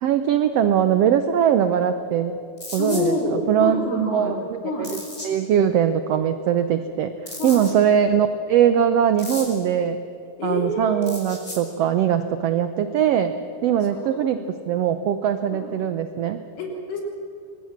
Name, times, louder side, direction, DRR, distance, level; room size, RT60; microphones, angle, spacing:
voice 1, 0.0-2.3 2.7-3.1 3.5-4.6 4.9-5.0 5.2-7.1 7.4-10.0 10.4-13.3 13.6-14.4 14.7-16.4, right 9 dB, 85° right, 9 dB, 1.4 m, -21 dB
sound 1, 2.6-3.1 4.8-5.3 7.3-7.7 9.2-9.6 11.0-11.6, left 1 dB, 15° left, 3.8 m, -35 dB
voice 2, 2.8-4.4 4.6-4.9 7.4-7.7 10.4-11.1 13.9-14.4 15.5-15.7 16.6-17.0, left 2 dB, 85° left, 0 dB, 5.0 m, -27 dB
25.0 x 20.0 x 7.4 m, 2.7 s
omnidirectional pair, 3.9 m